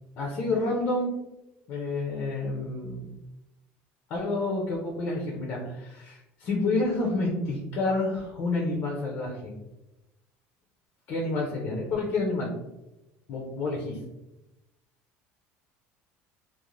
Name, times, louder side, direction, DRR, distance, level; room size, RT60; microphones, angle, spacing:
voice 1, 0.2-1.1 1.7-3.0 4.1-9.5 11.1-12.5 13.3-14.0, left 2 dB, 40° left, -2 dB, 0.5 m, -29 dB
2.5 x 2.1 x 3.0 m, 0.95 s
cardioid pair, 180°, 5 cm